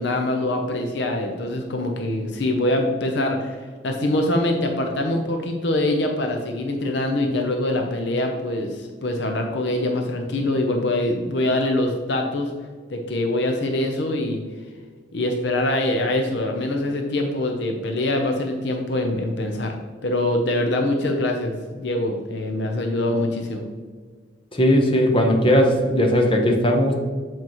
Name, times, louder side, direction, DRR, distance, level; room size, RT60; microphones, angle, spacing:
voice 1, 0.0-12.5 12.9-14.4 15.1-19.7 20.0-23.7, left 1 dB, 65° left, 3 dB, 0.6 m, -24 dB
voice 2, 24.5-26.9, equal, 25° left, 2 dB, 0.8 m, -18 dB
7.5 x 4.5 x 3.0 m, 1.5 s
head